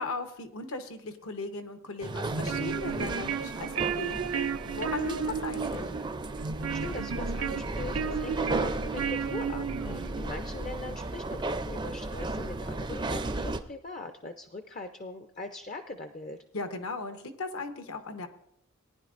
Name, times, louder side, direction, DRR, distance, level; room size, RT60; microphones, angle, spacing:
voice 1, 0.0-5.9 9.8-10.2 16.5-18.3, left 3 dB, 70° left, 8 dB, 1.0 m, -37 dB
sound 1, 2.0-13.6, right 2 dB, 20° right, 0.4 m, -35 dB
sound 2, 2.2-10.3, right 6 dB, 75° right, 0.5 m, -33 dB
voice 2, 6.7-16.4, left 3 dB, 35° left, 7 dB, 0.5 m, -41 dB
19.0 x 10.5 x 2.5 m, 0.75 s
head